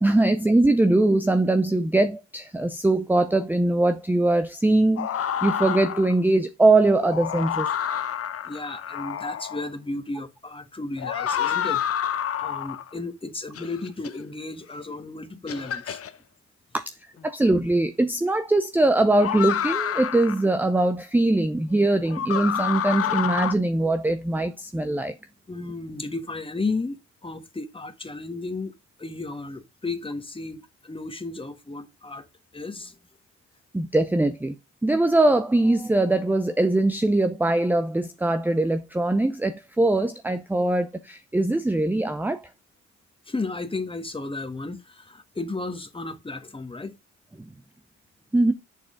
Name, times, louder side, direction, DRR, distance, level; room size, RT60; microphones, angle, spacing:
voice 1, 0.0-7.7 16.7-16.9 17.2-25.1 33.7-34.5 34.8-42.5 47.4-47.5 48.3-48.5, right 2 dB, 5° right, 0.6 m, -22 dB
sound 1, 5.0-6.2 6.9-9.7 11.0-12.9 13.5-14.1 14.9-15.0 15.5-16.1 17.6-17.7 19.2-20.4 22.1-23.5, left 9 dB, 50° left, 0.8 m, -28 dB
voice 2, 8.4-11.8 12.1-16.0 25.5-28.7 29.0-32.3 32.5-33.0 43.2-47.0, left 3 dB, 15° left, 1.5 m, -34 dB
7.6 x 6.7 x 3.7 m
cardioid pair, 90°, 30 cm